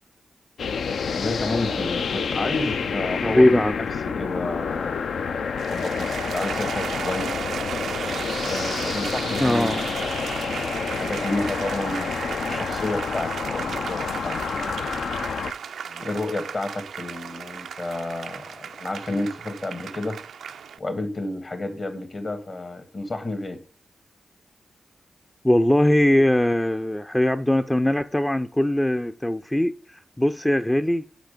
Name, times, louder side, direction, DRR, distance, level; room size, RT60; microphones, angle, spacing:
sound 1, 0.6-15.5, left 6 dB, 80° left, 0.4 m, -29 dB
voice 1, 1.2-3.6 4.0-5.0 5.7-7.3 8.5-12.1 12.4-14.8 15.9-20.2 20.8-23.6, left 2 dB, 50° left, 1.5 m, -31 dB
voice 2, 3.2-3.7 9.4-9.8 25.4-31.1, left 1 dB, 15° left, 0.4 m, -21 dB
sound 2, 5.6-20.8, right 7 dB, 85° right, 0.3 m, -34 dB
5.9 x 4.9 x 5.1 m
cardioid pair, 50°, 0 cm